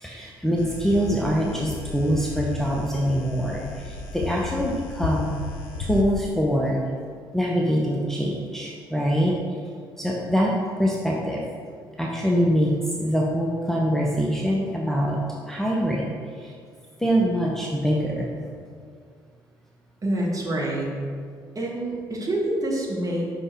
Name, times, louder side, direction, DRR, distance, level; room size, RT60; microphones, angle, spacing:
voice 1, 0.0-5.4 5.8-6.8 7.3-9.4 10.0-11.5 12.0-15.2 15.5-16.5 17.0-18.3, equal, 5° left, -3 dB, 0.7 m, -24 dB
sound 1, 0.6-6.0, left 4 dB, 70° left, 0.5 m, -34 dB
voice 2, 20.0-20.9 21.5-23.2, right 1 dB, 30° right, -2 dB, 1.4 m, -26 dB
5.4 x 5.3 x 3.4 m, 2.1 s
figure-of-eight pair, 45°, 12 cm